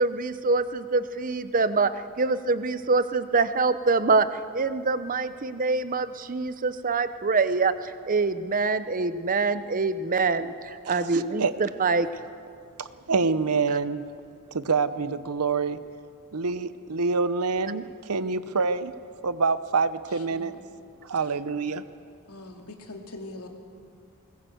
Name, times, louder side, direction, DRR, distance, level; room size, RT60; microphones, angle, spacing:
voice 1, 0.0-4.3 4.5-12.1, right 4 dB, 40° right, 12 dB, 0.8 m, -25 dB
voice 2, 10.9-11.5 12.8-14.1 14.5-15.8 16.3-18.9 19.2-20.5 21.0-21.8, right 4 dB, 80° right, 14 dB, 0.9 m, -26 dB
voice 3, 20.3-20.7 22.3-23.5, left 2 dB, 80° left, 3 dB, 2.6 m, -42 dB
20.5 x 20.0 x 7.9 m, 2.4 s
head